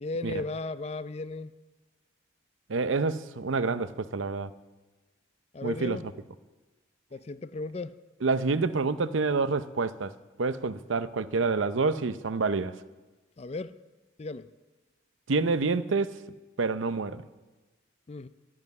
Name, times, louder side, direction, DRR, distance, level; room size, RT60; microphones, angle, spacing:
voice 1, 0.0-1.5 5.5-6.0 7.1-8.0 13.4-13.7 14.2-14.5 18.1-18.3, left 3 dB, 35° left, 0.4 m, -35 dB
voice 2, 2.7-4.5 5.6-6.0 8.2-10.1 10.4-12.8 15.3-16.2 16.6-17.3, right 4 dB, 90° right, 0.7 m, -28 dB
13.0 x 11.0 x 9.4 m
head